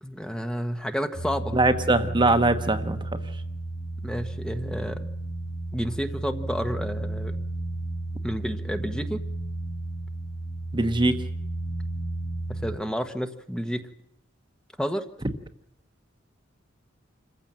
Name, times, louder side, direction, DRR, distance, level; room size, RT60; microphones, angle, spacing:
voice 1, 0.0-1.6 4.0-5.1 5.7-7.4 8.2-9.2 12.5-13.9 14.8-15.0, equal, 5° left, 7 dB, 1.2 m, -30 dB
sound 1, 1.1-12.8, right 2 dB, 55° left, 4.3 m, -33 dB
voice 2, 1.5-3.0 10.7-11.3, right 2 dB, 25° right, 8 dB, 1.1 m, -22 dB
27.0 x 15.0 x 7.5 m, 0.78 s
head